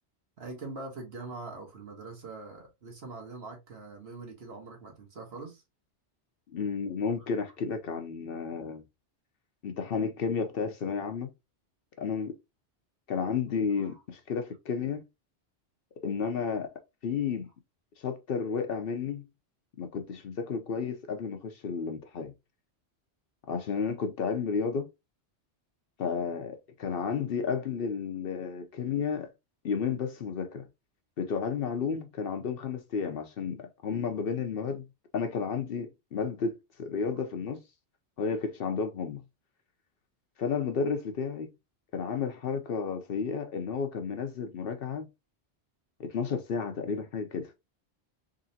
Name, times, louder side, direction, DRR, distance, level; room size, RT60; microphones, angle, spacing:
voice 1, 0.4-5.6 13.8-14.0, right 3 dB, 65° right, 1.5 m, -43 dB
voice 2, 6.5-8.8 9.6-11.3 12.0-12.3 13.1-15.0 16.0-16.7 17.0-17.5 18.0-19.2 19.8-22.3 23.5-24.9 26.0-29.3 29.6-30.7 31.2-34.8 35.1-37.6 38.2-39.2 40.4-41.5 41.9-45.1 46.0-47.5, left 6 dB, 60° left, 0.8 m, -32 dB
3.8 x 3.3 x 2.7 m
omnidirectional pair, 1.2 m